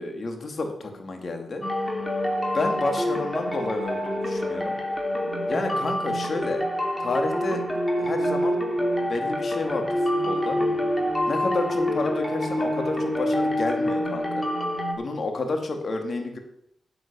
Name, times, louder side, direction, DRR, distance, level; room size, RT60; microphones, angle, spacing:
voice 1, 0.0-1.6 2.5-4.8 5.5-6.6 7.0-7.6 8.0-8.6 8.9-10.6 11.3-14.4 14.9-16.4, left 3 dB, 55° left, 5 dB, 2.5 m, -30 dB
sound 1, 1.6-14.9, equal, 20° left, 3.0 m, -26 dB
10.5 x 7.7 x 6.9 m, 0.74 s
supercardioid pair, 45°, 0 cm